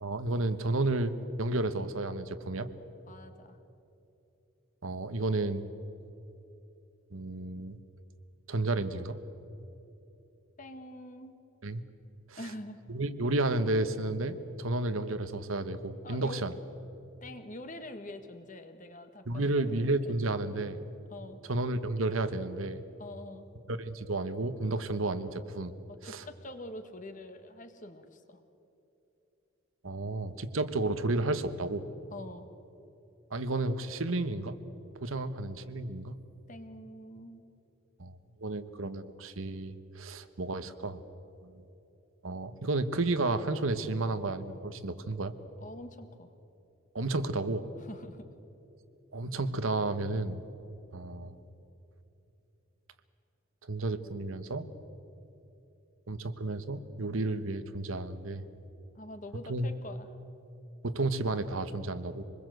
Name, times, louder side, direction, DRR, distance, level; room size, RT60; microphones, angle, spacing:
voice 1, 0.0-2.7 4.8-5.6 7.1-7.8 8.5-9.2 11.6-11.8 12.3-12.4 12.9-16.5 19.3-20.8 21.5-22.8 23.7-25.7 26.0-26.2 29.8-31.8 33.3-34.6 35.0-36.2 38.0-38.1 38.4-41.0 42.2-45.3 46.9-47.7 49.1-50.4 50.9-51.4 53.7-54.7 56.1-58.4 59.5-59.7 60.8-62.2, right 2 dB, 85° right, 11 dB, 1.2 m, -32 dB
voice 2, 3.1-3.6 10.6-11.3 12.4-12.8 16.0-16.4 17.2-20.1 21.1-21.4 23.0-23.5 25.9-28.4 32.1-32.5 36.5-37.4 45.6-46.3 47.8-48.3 58.9-60.1, left 1 dB, 40° left, 8 dB, 1.6 m, -45 dB
25.5 x 21.0 x 7.9 m, 2.9 s
head